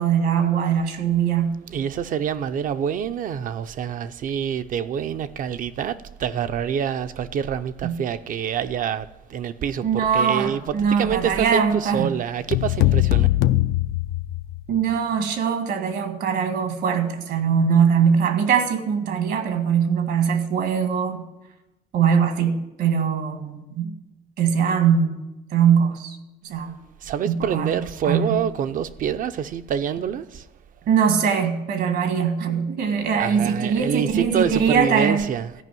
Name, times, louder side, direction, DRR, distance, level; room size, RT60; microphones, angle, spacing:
voice 1, 0.0-1.6 7.8-8.0 9.8-12.1 14.7-21.3 21.9-23.9 24.4-25.2 25.5-26.2 26.4-26.8 27.3-27.7 28.0-28.4 30.9-35.3, right 7 dB, 70° right, 1.8 m, -21 dB
voice 2, 1.7-13.3 27.0-30.5 33.2-35.5, right 8 dB, 55° right, 0.6 m, -26 dB
sound 1, 12.5-14.8, left 16 dB, 80° left, 0.5 m, -21 dB
14.0 x 5.4 x 9.2 m
cardioid pair, 110°, 17 cm